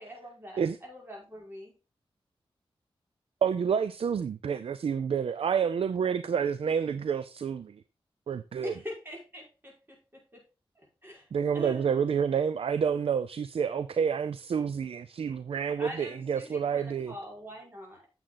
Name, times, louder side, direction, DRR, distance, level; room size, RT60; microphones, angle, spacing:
voice 1, 0.0-1.7 8.6-10.4 10.8-11.3 11.5-12.0 12.3-12.4 15.8-18.0, equal, 20° right, 5.3 m, -43 dB
voice 2, 3.4-7.8 8.3-8.7 11.3-17.1, right 7 dB, 75° right, 0.5 m, -29 dB
8.6 x 7.6 x 3.9 m
cardioid pair, 70°, 10 cm